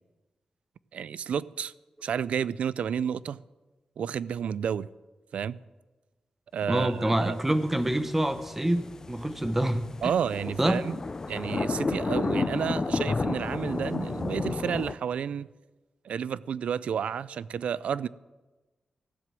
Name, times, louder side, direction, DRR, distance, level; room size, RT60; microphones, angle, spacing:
voice 1, 0.9-1.7 2.0-3.4 4.0-4.9 5.3-5.6 6.5-7.4 10.0-11.0 11.3-15.5 16.0-18.1, right 8 dB, 90° right, 0.4 m, -31 dB
voice 2, 6.7-10.1 10.6-10.8, right 1 dB, 15° right, 0.9 m, -26 dB
sound 1, 7.2-14.9, left 3 dB, 30° left, 0.4 m, -32 dB
15.0 x 7.6 x 7.5 m
wide cardioid pair, 130°, 2 cm